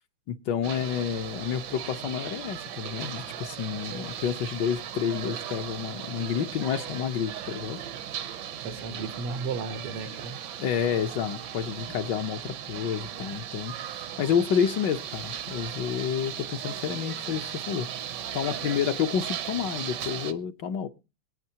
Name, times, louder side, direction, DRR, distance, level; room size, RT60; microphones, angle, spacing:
voice 1, 0.3-7.8 10.6-20.9, left 8 dB, 65° left, 1.3 m, -29 dB
sound 1, 0.6-20.3, right 10 dB, 65° right, 1.2 m, -37 dB
voice 2, 8.6-10.4, right 4 dB, 90° right, 2.2 m, -34 dB
26.0 x 9.0 x 2.8 m
omnidirectional pair, 2.4 m